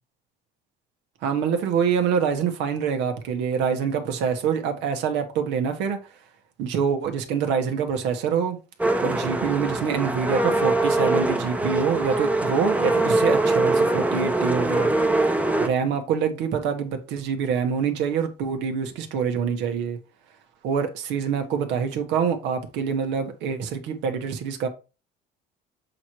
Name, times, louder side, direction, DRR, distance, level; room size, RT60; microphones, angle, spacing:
voice 1, 1.2-6.0 6.6-8.6 9.0-14.9 15.6-20.0 20.6-24.7, right 6 dB, 80° right, 1.5 m, -25 dB
sound 1, 8.8-15.7, right 2 dB, 5° right, 0.8 m, -23 dB
7.6 x 3.1 x 4.6 m
cardioid pair, 105°, 18 cm